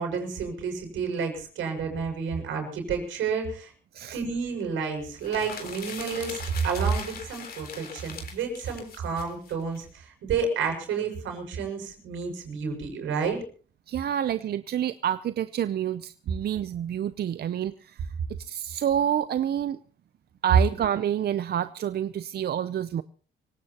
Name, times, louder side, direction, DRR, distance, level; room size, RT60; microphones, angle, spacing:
voice 1, 0.0-3.7 4.1-13.4, right 5 dB, 80° right, 3 dB, 6.7 m, -30 dB
sound 1, 5.1-9.8, left 5 dB, 50° left, 3.8 m, -41 dB
voice 2, 13.9-17.9 18.5-19.8 20.4-23.0, right 10 dB, 55° right, 13 dB, 0.6 m, -28 dB
25.5 x 17.5 x 2.9 m, 0.43 s
cardioid pair, 90°, 20 cm